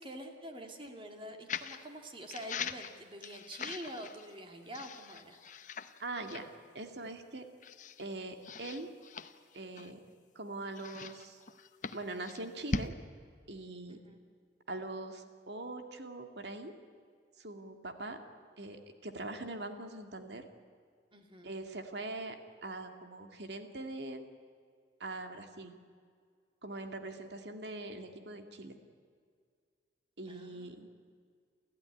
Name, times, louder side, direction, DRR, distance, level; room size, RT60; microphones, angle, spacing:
voice 1, 0.0-5.4 13.9-14.2 21.1-21.6 30.3-30.7, right 1 dB, 30° right, 3 dB, 2.4 m, -46 dB
sound 1, 1.5-1.8 2.3-4.3 4.7-6.0 6.3-6.5 7.0-7.1 7.6-8.1 8.4-10.1 10.8-12.9, left 4 dB, 45° left, 0.9 m, -41 dB
voice 2, 6.0-6.5 6.7-7.4 8.0-8.9 9.5-10.0 10.4-11.4 11.9-12.9 13.5-14.0 14.7-16.7 17.4-18.2 18.6-20.4 21.4-22.4 22.6-24.3 25.0-25.7 26.6-28.8 30.2-30.9, right 2 dB, 70° right, 5 dB, 2.2 m, -42 dB
29.0 x 14.0 x 10.0 m, 2.1 s
head